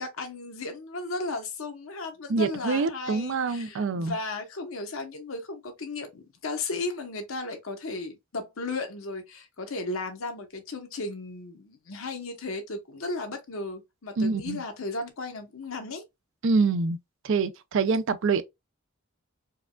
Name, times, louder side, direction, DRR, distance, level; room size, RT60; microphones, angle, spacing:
voice 1, 0.0-16.0, left 3 dB, 75° left, 1.0 m, -35 dB
voice 2, 2.3-4.2 14.2-14.6 16.4-17.0 17.2-18.4, right 4 dB, 60° right, 0.4 m, -25 dB
4.6 x 2.3 x 2.2 m
head